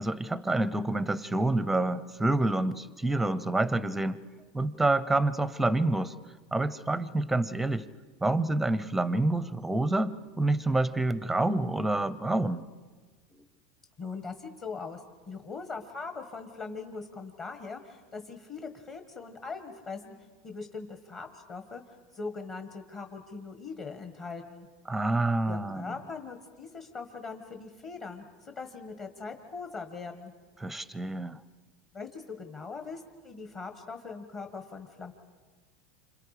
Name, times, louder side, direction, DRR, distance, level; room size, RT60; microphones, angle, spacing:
voice 1, 0.0-4.2 4.5-6.1 6.5-7.8 8.2-12.6 24.9-25.9 30.6-31.4, right 2 dB, 5° right, 16 dB, 0.7 m, -27 dB
voice 2, 14.0-15.0 15.3-20.1 20.4-24.7 25.5-30.3 31.9-35.1, left 4 dB, 30° left, 5 dB, 1.6 m, -41 dB
29.0 x 26.5 x 5.0 m, 1.4 s
supercardioid pair, 140°, 3 cm